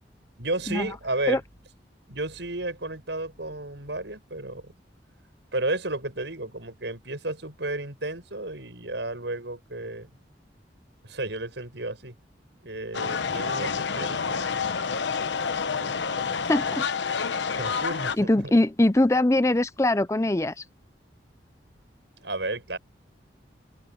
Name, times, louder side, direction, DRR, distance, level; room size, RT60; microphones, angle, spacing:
voice 1, 0.4-1.4 2.1-4.7 5.5-10.1 11.0-12.1 12.6-14.4 15.6-16.4 17.6-18.5 22.2-22.8, right 2 dB, 75° right, 6.6 m, -33 dB
sound 1, 12.9-18.2, left 5 dB, 80° left, 0.9 m, -28 dB
voice 2, 16.5-16.9 18.2-20.6, left 1 dB, 15° left, 0.5 m, -22 dB
head